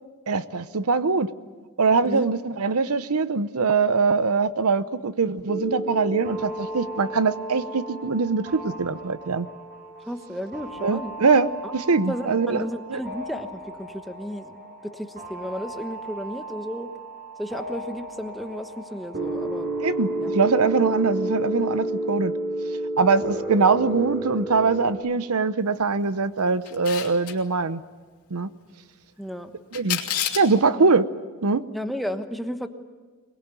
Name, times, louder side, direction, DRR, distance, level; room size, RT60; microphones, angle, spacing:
voice 1, 0.3-1.3 1.8-9.5 10.8-12.6 12.9-13.0 19.8-22.3 23.0-27.8 28.3-28.5 29.7-30.0 30.3-31.0 31.4-31.6, right 4 dB, 80° right, 14 dB, 0.8 m, -22 dB
sound 1, 5.5-24.9, right 1 dB, 45° right, 5.9 m, -32 dB
voice 2, 10.1-11.1 12.1-16.9 17.4-19.7 20.2-20.3 23.0-23.4 29.2-29.5 31.7-32.7, equal, ahead, 6 dB, 1.2 m, -33 dB
Camera, 26.7-27.3 29.7-30.5, left 11 dB, 85° left, 2.9 m, -28 dB
23.5 x 21.0 x 9.1 m, 1.4 s
head